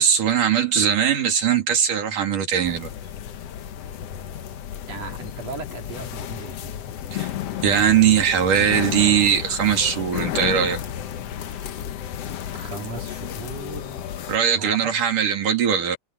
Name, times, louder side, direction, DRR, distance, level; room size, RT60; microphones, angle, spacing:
voice 1, 0.0-2.9 7.1-7.3 7.6-10.8 14.3-16.0, right 8 dB, 80° right, 4.5 m, -20 dB
sound 1, 2.6-14.4, left 10 dB, 65° left, 1.9 m, -32 dB
voice 2, 4.9-6.7 12.5-14.0 14.5-14.9, right 3 dB, 55° right, 4.9 m, -36 dB
omnidirectional pair, 3.6 m